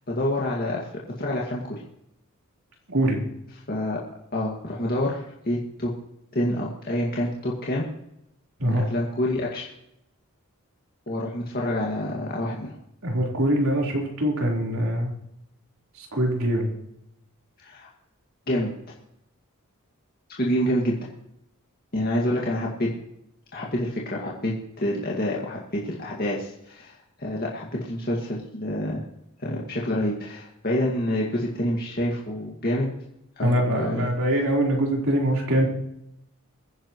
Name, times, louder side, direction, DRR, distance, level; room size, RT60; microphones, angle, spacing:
voice 1, 0.1-0.8 1.2-1.6 3.7-4.0 4.3-5.9 6.3-7.9 8.7-9.7 11.1-12.7 17.6-17.9 18.5-18.7 20.4-21.0 21.9-22.9 23.5-29.0 29.4-32.9 33.4-34.1, left 1 dB, 40° left, -3 dB, 2.1 m, -27 dB
voice 2, 2.9-3.2 8.6-8.8 13.0-15.1 16.0-16.7 33.4-35.7, right 1 dB, 75° right, -1 dB, 4.1 m, -23 dB
23.5 x 10.0 x 3.2 m, 0.81 s
head